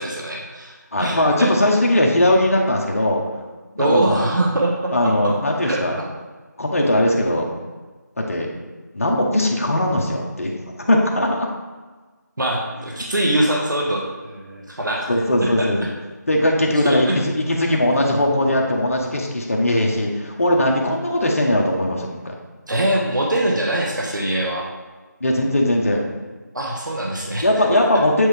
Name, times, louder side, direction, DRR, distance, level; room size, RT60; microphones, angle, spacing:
voice 1, 0.0-1.7 3.8-4.9 5.6-5.8 12.4-15.1 15.4-15.7 16.8-17.2 22.7-24.7 26.5-27.4 27.7-27.8, right 1 dB, 80° right, -1 dB, 1.2 m, -23 dB
voice 2, 0.9-3.2 3.7-4.2 4.9-6.0 6.6-7.5 8.3-8.5 8.9-11.5 15.1-15.9 16.3-22.3 25.2-26.0 27.4-28.3, left 1 dB, 50° left, -1 dB, 0.9 m, -19 dB
7.9 x 3.6 x 3.5 m, 1.3 s
figure-of-eight pair, 170°, 10 cm